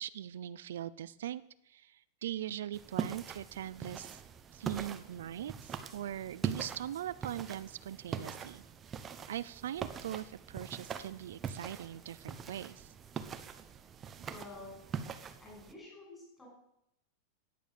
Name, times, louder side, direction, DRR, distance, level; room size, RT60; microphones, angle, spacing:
voice 1, 0.0-4.2 4.5-8.6 9.3-12.9, right 11 dB, 85° right, 15 dB, 0.6 m, -41 dB
sound 1, 2.7-15.7, right 7 dB, 15° right, 0.8 m, -42 dB
voice 2, 14.2-14.8 15.4-16.5, left 2 dB, 10° left, -2 dB, 6.0 m, -50 dB
14.5 x 9.4 x 6.7 m, 0.81 s
supercardioid pair, 170°, 0 cm